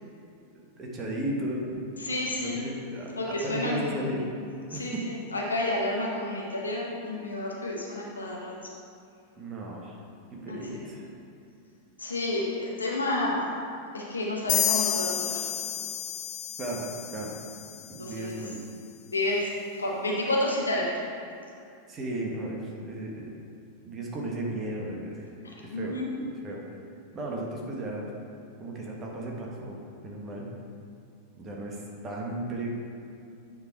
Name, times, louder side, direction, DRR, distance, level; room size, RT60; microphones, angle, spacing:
voice 1, 0.8-1.8 2.3-4.3 4.7-5.0 9.4-10.0 10.3-11.1 16.6-16.9 17.1-17.3 17.9-18.6 21.9-23.3 23.8-25.3 25.6-26.0 26.3-26.6 27.1-28.1 28.6-30.5 31.3-32.7, right 1 dB, 25° right, -2 dB, 1.3 m, -35 dB
voice 2, 2.0-2.6 3.2-4.1 4.7-8.5 10.5-10.8 12.0-13.5 13.9-15.4 18.0-18.3 19.1-19.5 19.8-20.9 25.4-26.1, left 1 dB, 75° left, -3 dB, 1.4 m, -30 dB
sound 1, 14.5-18.1, left 11 dB, 40° left, 0.6 m, -30 dB
9.4 x 3.8 x 4.6 m, 2.5 s
figure-of-eight pair, 90°, 0 cm